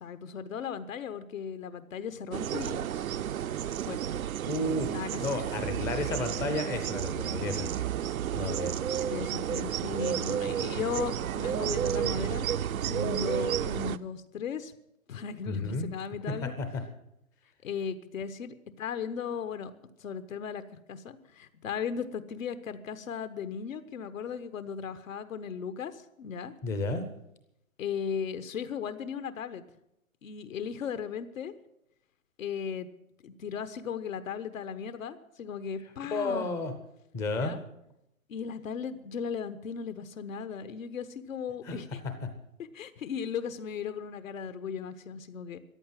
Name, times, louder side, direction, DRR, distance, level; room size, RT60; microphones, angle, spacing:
voice 1, 0.0-2.9 3.8-4.0 4.9-5.2 9.0-12.5 12.9-14.7 15.1-16.5 17.6-19.7 20.0-20.6 20.9-26.5 27.8-29.6 30.2-31.5 32.4-32.9 33.2-36.5 37.4-37.6 38.3-42.0 42.7-45.6, left 7 dB, 70° left, 10 dB, 1.3 m, -36 dB
sound 1, 2.3-14.0, right 10 dB, 80° right, 0.7 m, -31 dB
voice 2, 4.5-4.9 5.2-7.9 8.3-9.1 15.5-15.9 16.4-16.7 26.6-27.1 36.1-36.7 37.1-37.6 41.6-41.8, left 2 dB, 5° left, 8 dB, 0.5 m, -32 dB
14.5 x 10.5 x 7.5 m, 0.82 s
hypercardioid pair, 150°, 41 cm